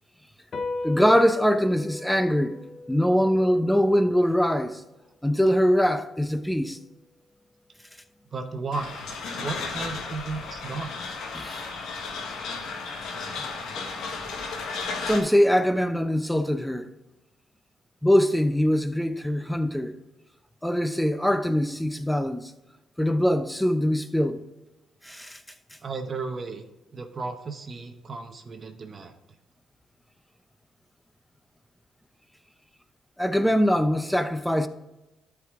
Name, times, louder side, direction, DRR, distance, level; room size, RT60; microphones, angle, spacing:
sound 1, 0.5-7.2, left 2 dB, 50° left, 0.6 m, -39 dB
voice 1, 0.8-2.6 2.9-4.8 5.2-6.8 11.3-11.7 15.0-16.9 18.0-20.0 20.6-22.5 23.0-24.4 25.0-25.4 33.2-34.7, equal, 5° left, 0.6 m, -23 dB
voice 2, 8.3-9.1 9.4-10.9 25.8-26.6 26.9-29.1, right 4 dB, 40° right, 0.8 m, -34 dB
sound 2, 8.7-15.2, left 4 dB, 80° left, 1.4 m, -34 dB
12.0 x 4.8 x 3.6 m
cardioid pair, 90°, 0 cm